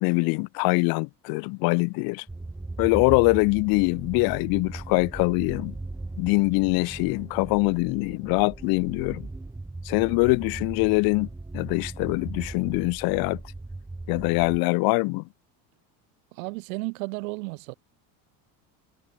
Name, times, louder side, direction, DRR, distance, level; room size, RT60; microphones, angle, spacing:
voice 1, 0.0-2.2 2.8-5.7 6.2-9.3 9.8-11.3 11.5-13.4 14.1-15.2, left 29 dB, 60° left, 0.7 m, -23 dB
sound 1, 2.3-14.6, right 2 dB, 5° right, 1.5 m, -38 dB
voice 2, 16.3-17.7, right 28 dB, 85° right, 2.0 m, -33 dB
cardioid pair, 140°, 41 cm